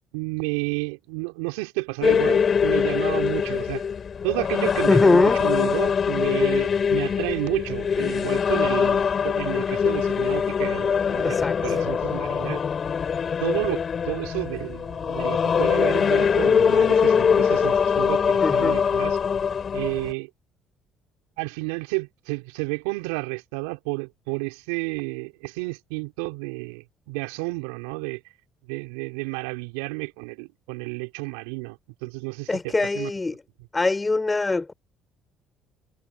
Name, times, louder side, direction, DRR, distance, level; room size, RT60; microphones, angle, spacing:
voice 1, 0.1-3.8 4.2-12.6 13.4-19.2 19.7-20.3 21.4-28.2 28.7-33.1, right 28 dB, 80° right, 3.8 m, -31 dB
sound 1, 2.0-20.1, left 6 dB, 45° left, 2.8 m, -23 dB
voice 2, 4.9-5.4 11.2-11.8 18.4-18.8 32.5-33.4 33.7-34.7, left 3 dB, 20° left, 4.3 m, -22 dB
hypercardioid pair, 60°, 0 cm